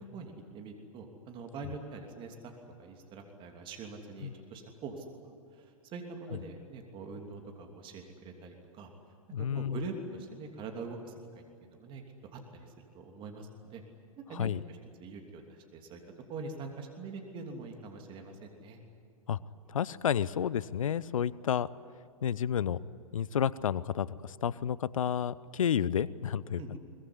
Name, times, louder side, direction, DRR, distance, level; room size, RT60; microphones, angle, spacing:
voice 1, 0.1-5.0 5.5-8.9 9.5-11.4 11.7-12.0 12.3-13.8 14.2-16.0 16.3-18.8 26.6-26.8, right 4 dB, 30° right, 3 dB, 3.0 m, -44 dB
voice 2, 9.3-9.8 14.3-14.6 19.3-19.4 19.7-21.7 22.2-22.8 23.1-26.8, left 8 dB, 65° left, 20 dB, 0.8 m, -31 dB
23.0 x 21.0 x 9.9 m, 2.4 s
figure-of-eight pair, 110°, 18 cm